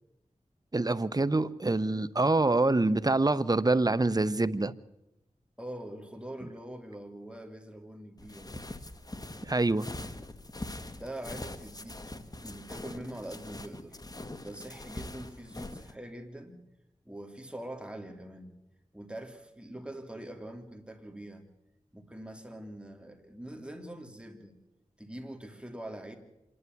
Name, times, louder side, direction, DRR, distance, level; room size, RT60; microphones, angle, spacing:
voice 1, 0.7-4.7 9.4-9.9, right 2 dB, 30° right, 0.9 m, -26 dB
voice 2, 5.6-8.6 10.9-14.0 14.4-16.6 17.0-18.5 18.9-21.5 21.9-24.6 25.0-26.1, right 1 dB, 10° right, 3.2 m, -43 dB
sound 1, 8.2-15.9, left 2 dB, 30° left, 1.5 m, -43 dB
26.5 x 11.0 x 9.4 m
cardioid pair, 50°, 13 cm